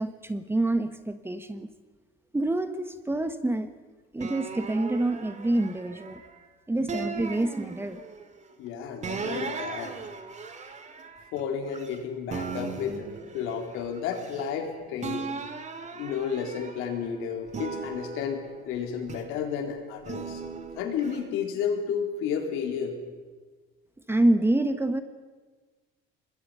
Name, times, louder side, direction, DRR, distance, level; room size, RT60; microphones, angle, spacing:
voice 1, 0.0-1.7 2.3-3.7 4.1-6.2 6.7-8.0 24.1-25.0, right 1 dB, 10° right, 10 dB, 1.3 m, -27 dB
sound 1, 4.2-6.3 6.9-8.2 9.0-12.0 12.3-14.7 15.0-17.0 17.5-19.5 20.1-21.2, right 5 dB, 35° right, 2.1 m, -38 dB
voice 2, 8.6-9.9 11.3-15.3 15.9-20.5 20.7-23.0, left 7 dB, 75° left, 3 dB, 3.8 m, -32 dB
26.0 x 20.5 x 5.7 m, 1.4 s
cardioid pair, 100°, 21 cm